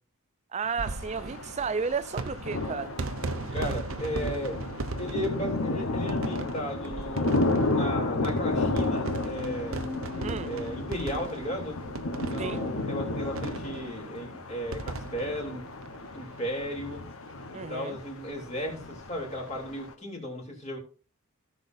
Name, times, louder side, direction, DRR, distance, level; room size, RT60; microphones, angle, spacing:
voice 1, 0.5-2.9 10.2-10.5 12.4-12.6 17.5-18.0, right 5 dB, 30° right, 0.4 m, -32 dB
sound 1, 0.6-16.7 17.0-17.1 17.3-17.4 18.7-18.9, right 3 dB, 65° right, 0.8 m, -38 dB
sound 2, 0.8-19.9, left 2 dB, 70° left, 1.1 m, -33 dB
voice 2, 3.5-4.6 5.0-9.9 10.4-11.8 12.1-15.6 16.1-17.0 17.5-20.8, equal, 30° left, 3.1 m, -35 dB
sound 3, 8.2-13.2, left 3 dB, 10° left, 1.1 m, -43 dB
17.0 x 6.1 x 2.6 m
head